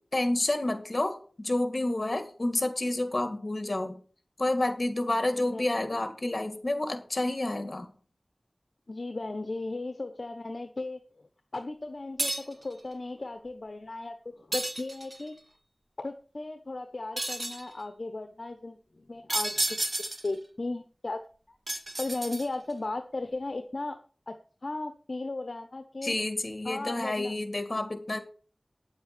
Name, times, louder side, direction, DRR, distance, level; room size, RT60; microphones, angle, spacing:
voice 1, 0.1-4.0 4.4-7.9 26.0-28.2, left 1 dB, 50° left, 8 dB, 2.3 m, -29 dB
voice 2, 5.2-5.7 8.9-11.2 11.5-15.3 16.0-19.8 20.2-21.2 22.0-24.0 24.3-24.4 24.6-26.2 26.6-27.3, left 2 dB, 65° left, 8 dB, 1.0 m, -36 dB
sound 1, 12.2-12.6 14.5-15.3 17.2-17.7 19.3-20.4 21.7-22.7, right 1 dB, 45° right, 1.9 m, -32 dB
9.7 x 7.9 x 6.8 m, 0.41 s
wide cardioid pair, 55°, 0 cm